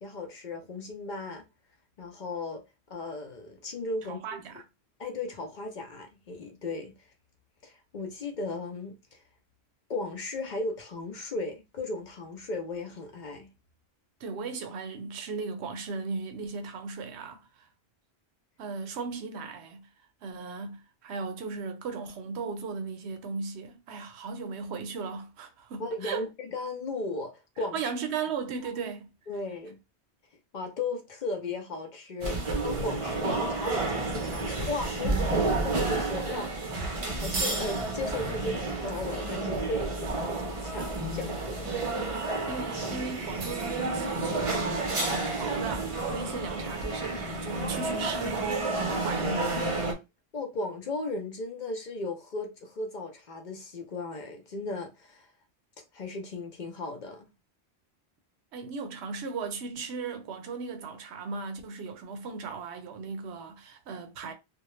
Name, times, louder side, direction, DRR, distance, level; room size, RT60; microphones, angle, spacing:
voice 1, 0.0-1.4 2.0-2.6 2.9-4.4 5.0-6.9 7.6-8.9 9.9-13.5 25.8-27.8 29.3-29.8 30.5-41.8 50.3-55.3 55.9-57.3, left 2 dB, 55° left, 0.6 m, -36 dB
voice 2, 4.1-4.6 14.2-17.7 18.6-19.9 20.2-26.3 27.7-29.1 41.7-41.8 42.5-49.6 58.5-64.3, right 4 dB, 85° right, 0.9 m, -37 dB
sound 1, 32.2-49.9, right 2 dB, 40° right, 0.5 m, -30 dB
2.3 x 2.1 x 2.9 m
omnidirectional pair, 1.1 m